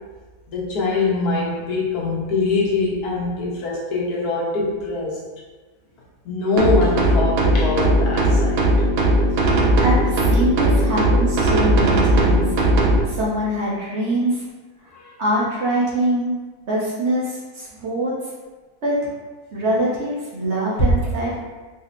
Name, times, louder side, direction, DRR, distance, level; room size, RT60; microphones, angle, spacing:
voice 1, 0.5-5.2 6.2-8.6 14.9-15.1, left 3 dB, 90° left, -4 dB, 1.3 m, -23 dB
sound 1, 6.6-13.0, right 1 dB, 75° right, 0.5 m, -18 dB
voice 2, 9.8-12.5 13.1-14.4 15.2-16.3 16.6-18.1 18.8-18.9 19.5-21.4, right 1 dB, 55° right, -7 dB, 1.0 m, -23 dB
4.2 x 2.0 x 2.5 m, 1.3 s
omnidirectional pair, 1.6 m